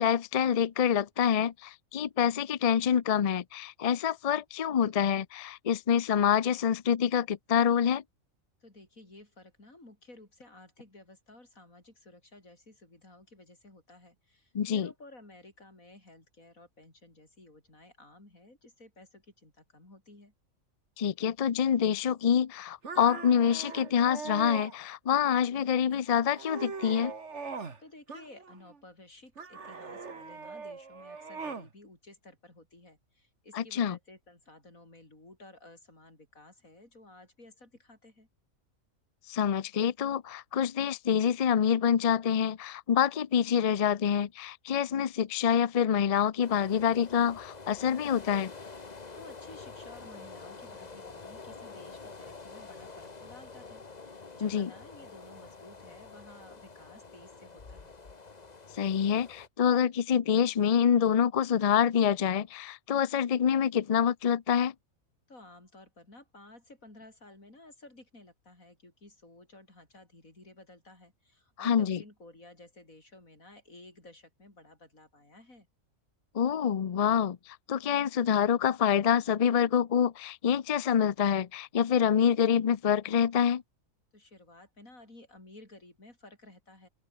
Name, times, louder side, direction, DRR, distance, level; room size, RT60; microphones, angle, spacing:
voice 1, 0.0-8.0 14.5-14.9 21.0-27.1 33.5-34.0 39.3-48.5 54.4-54.7 58.8-64.7 71.6-72.0 76.3-77.4 77.7-83.6, left 8 dB, 45° left, 0.4 m, -26 dB
voice 2, 8.6-20.3 27.8-38.3 49.2-57.9 65.3-75.7 84.1-86.9, left 2 dB, 90° left, 6.9 m, -54 dB
sound 1, 22.8-24.7 25.3-25.8 26.2-27.8 28.1-28.8 29.4-31.7, right 4 dB, 60° right, 2.4 m, -41 dB
sound 2, 46.4-59.5, left 4 dB, 30° left, 1.5 m, -47 dB
open air
omnidirectional pair, 1.4 m